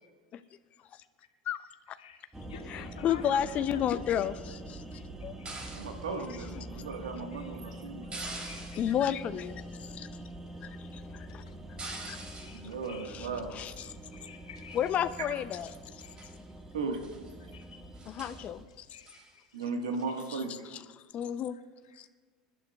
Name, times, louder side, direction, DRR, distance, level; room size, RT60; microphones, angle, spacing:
voice 1, 2.0-3.8 4.8-5.0 5.4-5.8 6.3-6.4 6.7-7.8 8.2-8.8 10.2-10.3 10.5-10.8 11.4-11.5 12.4-13.1 13.8-15.0 16.0-16.3 17.4-17.8 18.7-20.1 21.5-22.1, left 7 dB, 85° left, 3 dB, 1.7 m, -53 dB
sound 1, 2.3-18.6, right 1 dB, 15° right, 1.6 m, -45 dB
voice 2, 2.7-4.8 5.2-5.4 8.8-10.1 10.6-11.4 12.1-12.2 13.0-13.9 14.7-15.7 18.1-18.9 20.3-20.4 20.7-20.8 21.1-21.6 22.0-22.1, left 9 dB, 45° left, 11 dB, 0.6 m, -32 dB
sound 2, 5.5-6.1 8.1-9.1 11.8-12.7 13.7-14.1 14.7-15.3 15.6-15.7 16.0-16.4 16.9-17.3 17.6-17.7 18.0-18.5 19.1-19.3 20.2-20.4, right 2 dB, 30° right, 3.2 m, -44 dB
voice 3, 5.7-8.2 12.5-13.5 16.7-17.0 19.5-20.5, right 4 dB, 85° right, 4 dB, 1.5 m, -36 dB
26.5 x 11.5 x 2.3 m, 1.5 s
hypercardioid pair, 80°, 3 cm